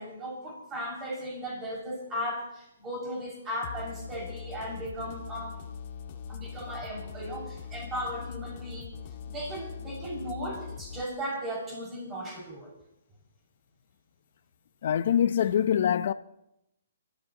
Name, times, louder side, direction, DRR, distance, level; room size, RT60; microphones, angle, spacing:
voice 1, 0.0-5.6 6.3-8.9 9.2-12.7, equal, 15° right, 6.2 m, -36 dB
sound 1, 3.6-11.0, left 7 dB, 40° left, 1.9 m, -41 dB
voice 2, 14.8-16.1, left 9 dB, 60° left, 0.7 m, -24 dB
28.5 x 13.5 x 3.0 m
hypercardioid pair, 145°, 0 cm